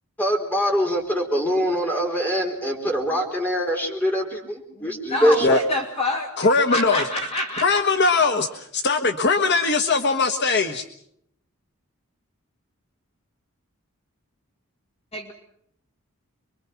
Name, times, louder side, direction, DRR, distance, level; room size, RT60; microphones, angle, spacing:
voice 1, 0.2-5.6, equal, 10° left, 1 dB, 4.3 m, -23 dB
voice 2, 4.7-7.8 15.1-15.3, left 1 dB, 25° left, 2 dB, 2.3 m, -27 dB
voice 3, 6.4-7.0 7.6-10.9, left 3 dB, 50° left, 7 dB, 1.3 m, -20 dB
27.0 x 23.5 x 5.9 m, 0.70 s
head